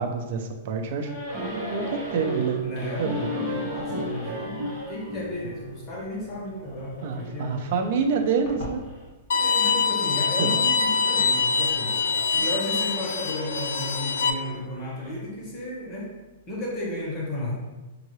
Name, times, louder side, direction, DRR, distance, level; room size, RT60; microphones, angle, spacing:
voice 1, 0.0-3.3 7.0-8.8 10.4-10.5, right 5 dB, 50° right, 4 dB, 0.6 m, -27 dB
sound 1, 1.0-5.2 6.6-9.8 10.4-15.3, left 2 dB, 40° left, 1.5 m, -39 dB
sound 2, 1.3-6.6, right 2 dB, 25° right, 1.2 m, -34 dB
voice 2, 2.6-7.7 9.4-11.9 12.3-16.1 16.5-17.6, left 1 dB, 20° left, -4 dB, 1.0 m, -34 dB
Bowed string instrument, 9.3-14.3, left 5 dB, 75° left, 0.3 m, -24 dB
5.5 x 2.5 x 3.1 m, 1.1 s
hypercardioid pair, 160°, 0 cm